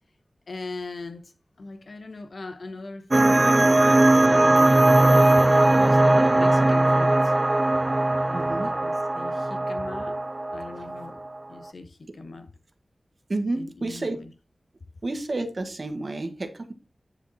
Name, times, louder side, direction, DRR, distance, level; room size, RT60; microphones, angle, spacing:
voice 1, 0.5-1.3 1.6-3.8 4.1-7.3 8.3-10.2 10.5-11.2 11.5-12.5 13.5-14.3, left 3 dB, 70° left, 1.1 m, -40 dB
sound 1, 3.1-11.4, right 2 dB, 35° right, 0.4 m, -19 dB
voice 2, 8.3-8.7 13.3-14.2 15.0-16.7, right 2 dB, 50° right, 1.6 m, -30 dB
10.0 x 5.1 x 4.2 m
wide cardioid pair, 80°, 0 cm